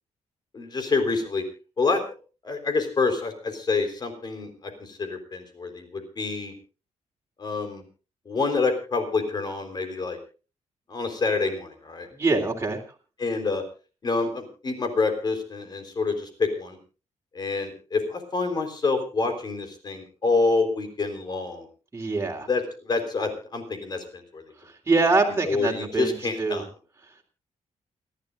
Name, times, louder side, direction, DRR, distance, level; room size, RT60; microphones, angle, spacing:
voice 1, 0.5-1.4 1.8-2.0 2.4-4.5 4.8-6.5 7.4-7.8 8.3-10.2 10.9-12.1 13.2-13.6 14.0-16.8 17.3-21.7 22.5-24.4 25.5-26.6, left 3 dB, 35° left, 6 dB, 4.0 m, -27 dB
voice 2, 12.1-12.8 21.9-22.5 24.6-26.6, right 3 dB, 20° right, 1 dB, 3.3 m, -24 dB
29.0 x 12.0 x 2.5 m, 0.34 s
wide cardioid pair, 155°, 12 cm